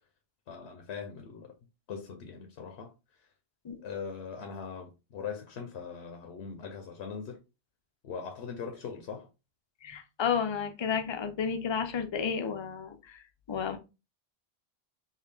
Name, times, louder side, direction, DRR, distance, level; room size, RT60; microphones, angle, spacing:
voice 1, 0.5-1.5 1.9-3.3 3.8-7.4 8.0-9.3, left 6 dB, 75° left, 0.9 m, -41 dB
voice 2, 9.8-13.2 13.5-13.8, left 7 dB, 45° left, 0.3 m, -32 dB
3.7 x 2.3 x 3.3 m
omnidirectional pair, 1.1 m